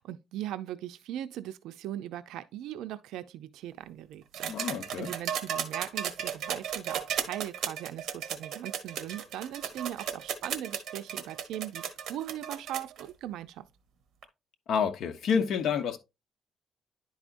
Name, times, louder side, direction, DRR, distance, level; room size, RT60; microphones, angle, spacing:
voice 1, 0.0-4.7 5.0-13.7, right 12 dB, 90° right, 0.5 m, -39 dB
sound 1, 4.3-13.0 14.2-14.3, right 8 dB, 70° right, 1.0 m, -35 dB
voice 2, 4.5-5.1 14.7-16.0, left 6 dB, 65° left, 0.9 m, -28 dB
10.5 x 4.8 x 2.5 m
cardioid pair, 130°, 0 cm